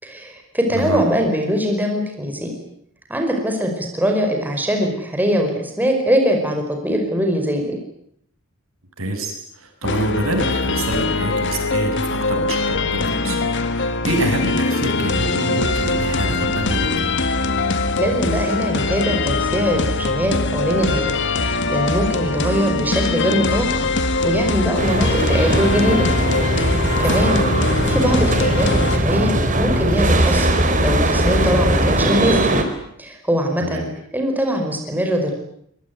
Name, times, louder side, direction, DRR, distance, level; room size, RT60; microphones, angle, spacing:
voice 1, 0.0-2.5 3.1-7.8 18.0-21.1 21.4-26.1 26.5-27.4 27.9-30.6 30.8-32.4 33.0-33.9 34.1-35.3, equal, 10° right, 2 dB, 5.2 m, -22 dB
voice 2, 9.0-13.4 13.7-17.0 27.0-27.1 33.6-33.9, right 1 dB, 75° right, 5 dB, 7.7 m, -26 dB
sound 1, 9.8-29.0, left 3 dB, 60° left, 2.0 m, -22 dB
sound 2, 24.8-32.6, right 1 dB, 40° right, 3.9 m, -19 dB
25.5 x 21.0 x 9.5 m, 0.72 s
head